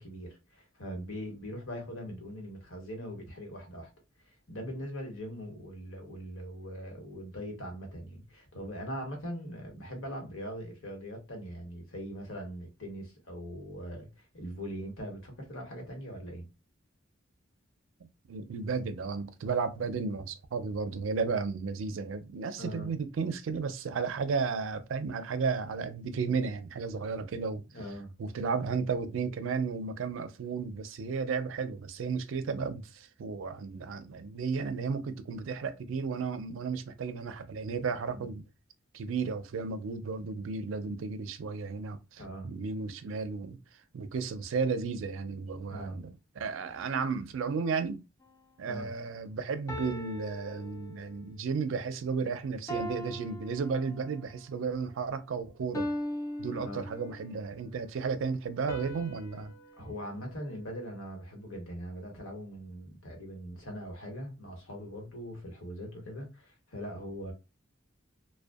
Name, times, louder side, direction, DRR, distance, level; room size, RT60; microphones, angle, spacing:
voice 1, 0.0-3.9 4.5-16.5 22.6-22.9 27.7-28.1 38.1-38.3 42.2-42.5 45.7-46.0 48.7-48.9 56.5-56.9 59.8-67.3, equal, 80° left, 1.0 m, -41 dB
voice 2, 18.3-27.6 28.2-38.4 38.9-43.6 43.9-46.1 46.4-48.0 48.6-55.9 56.4-59.5, right 5 dB, 75° right, 0.4 m, -33 dB
sound 1, 48.2-48.5 49.7-51.3 52.7-54.3 55.7-57.4 58.7-61.1, equal, 15° left, 0.3 m, -40 dB
2.5 x 2.1 x 2.3 m
head